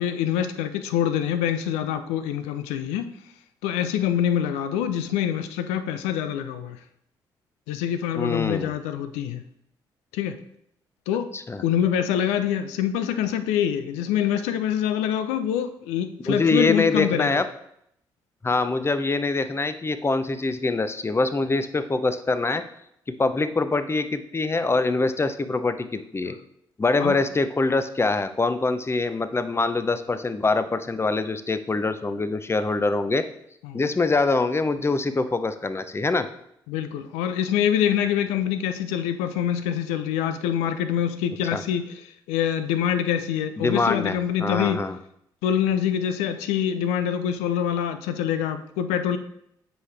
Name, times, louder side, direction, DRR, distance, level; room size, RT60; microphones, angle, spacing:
voice 1, 0.0-3.1 3.6-6.8 7.7-9.4 10.1-10.4 11.1-11.3 11.6-17.4 27.0-27.2 33.6-33.8 36.7-42.0 42.3-44.8 45.4-49.2, left 9 dB, 80° left, 10 dB, 0.5 m, -25 dB
voice 2, 8.2-8.7 11.3-11.6 16.3-17.5 18.4-22.6 23.2-26.4 26.8-33.2 33.7-36.3 41.5-41.6 43.6-44.2 44.4-45.0, left 3 dB, 25° left, 11 dB, 0.6 m, -24 dB
7.7 x 4.8 x 3.3 m, 0.73 s
hypercardioid pair, 45°, 11 cm